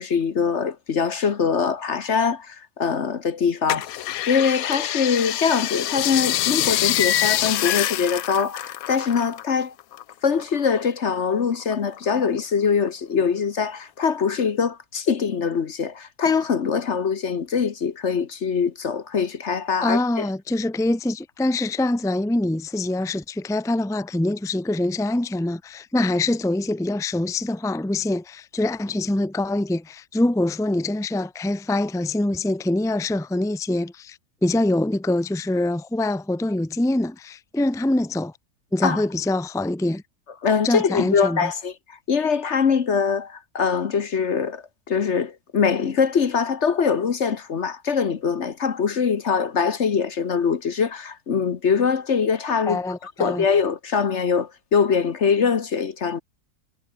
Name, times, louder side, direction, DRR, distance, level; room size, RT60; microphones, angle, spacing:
voice 1, 0.0-9.7 10.2-20.3 38.8-39.0 40.4-56.2, left 6 dB, 50° left, 1.3 m, -23 dB
sound 1, 3.7-9.5 9.8-11.1 11.6-12.4 12.9-13.0, left 13 dB, 70° left, 1.0 m, -25 dB
voice 2, 19.8-38.3 38.7-40.0 40.6-41.5 52.7-53.5, left 2 dB, 5° left, 0.8 m, -24 dB
omnidirectional pair, 1.6 m